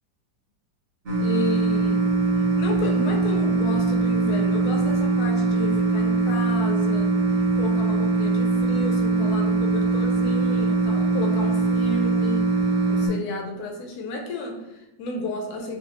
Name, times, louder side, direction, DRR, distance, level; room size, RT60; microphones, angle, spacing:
sound 1, 1.1-13.1, right 3 dB, 80° right, 0.5 m, -22 dB
voice 1, 1.2-2.1 2.6-7.1 7.6-12.5 12.9-15.8, left 2 dB, 75° left, 2 dB, 0.9 m, -32 dB
3.4 x 2.5 x 2.9 m, 0.93 s
omnidirectional pair, 2.1 m